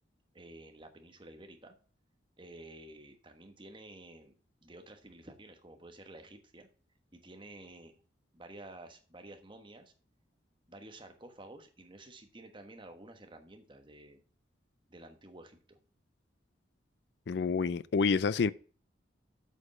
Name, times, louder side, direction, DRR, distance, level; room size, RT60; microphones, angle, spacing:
voice 1, 0.3-1.7 2.4-4.3 4.6-6.7 7.1-7.9 8.3-9.9 10.7-14.2 14.9-15.8, right 1 dB, 25° right, 1.2 m, -51 dB
voice 2, 17.3-18.5, left 5 dB, 60° left, 0.4 m, -28 dB
8.1 x 5.1 x 5.3 m
head